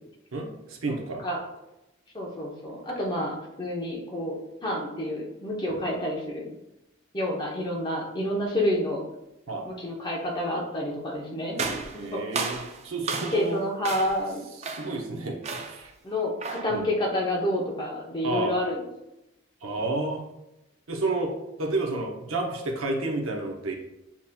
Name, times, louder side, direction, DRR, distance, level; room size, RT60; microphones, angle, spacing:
voice 1, 0.3-1.2 5.7-5.8 9.5-9.7 12.0-13.6 14.6-15.9 16.7-16.8 18.2-18.5 19.6-20.2 20.9-21.3 21.6-23.8, right 2 dB, 80° right, 2 dB, 0.8 m, -30 dB
voice 2, 0.9-1.5 2.1-6.5 7.1-9.0 9.6-11.6 11.9-12.3 13.3-14.4 16.0-18.8, left 1 dB, 20° left, -2 dB, 0.8 m, -29 dB
sound 1, 11.6-13.5 13.8-14.3 14.6-15.0 15.4-15.9 16.4-16.8, right 4 dB, 30° right, 0.3 m, -33 dB
7.1 x 2.9 x 2.2 m, 0.91 s
head